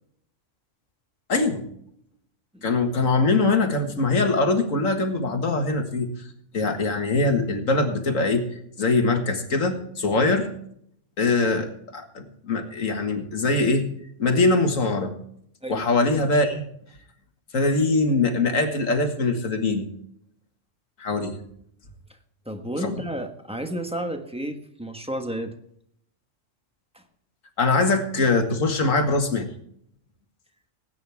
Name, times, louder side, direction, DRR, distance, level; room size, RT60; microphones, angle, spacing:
voice 1, 1.3-1.6 2.6-6.1 6.5-8.5 8.8-10.5 11.2-11.7 11.9-13.9 14.2-15.1 15.7-16.6 17.5-19.9 21.0-21.4 22.8-22.9 27.6-29.5, left 3 dB, 85° left, 5 dB, 2.1 m, -22 dB
voice 2, 22.4-25.5 26.9-27.0, right 1 dB, 5° right, 5 dB, 1.3 m, -31 dB
19.0 x 9.4 x 3.5 m, 0.69 s
omnidirectional pair, 1.3 m